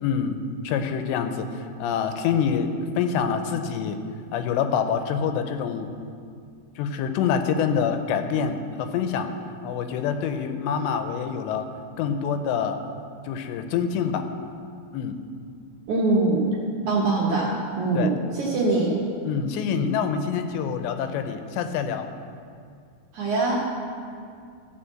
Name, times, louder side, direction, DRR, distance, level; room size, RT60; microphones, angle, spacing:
voice 1, 0.0-4.0 4.3-5.9 6.8-9.3 9.6-11.7 12.0-12.8 13.3-14.3 14.9-15.2 18.0-18.1 19.2-22.1, left 7 dB, 85° left, 7 dB, 2.9 m, -26 dB
voice 2, 15.9-16.4 16.9-17.5 17.8-18.9 23.1-23.6, right 3 dB, 60° right, -4 dB, 2.3 m, -22 dB
14.5 x 5.1 x 7.5 m, 2.3 s
omnidirectional pair, 5.0 m